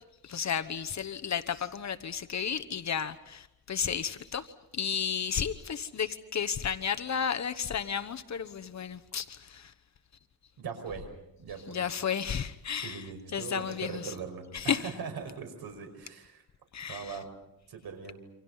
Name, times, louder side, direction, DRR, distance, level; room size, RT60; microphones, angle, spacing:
voice 1, 0.0-9.7 11.7-14.1 14.5-14.9 16.7-17.2, left 7 dB, 50° left, 1.1 m, -33 dB
voice 2, 10.6-11.1 11.4-11.9 12.8-16.4 16.9-17.3 17.7-18.2, right 6 dB, 85° right, 5.5 m, -40 dB
28.5 x 26.0 x 5.7 m
cardioid pair, 115°, 36 cm